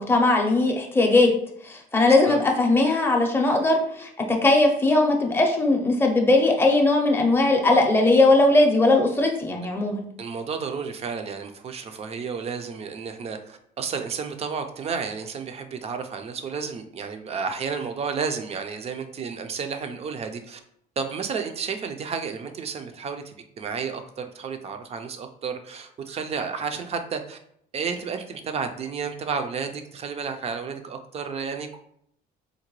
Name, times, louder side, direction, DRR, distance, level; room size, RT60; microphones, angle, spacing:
voice 1, 0.0-1.3 1.6-10.0, left 2 dB, 15° left, 1 dB, 0.6 m, -19 dB
voice 2, 2.0-2.4 10.2-20.6 21.0-27.4 27.7-31.8, right 5 dB, 40° right, 7 dB, 0.4 m, -32 dB
3.8 x 2.1 x 3.0 m, 0.70 s
cardioid pair, 110°, 17 cm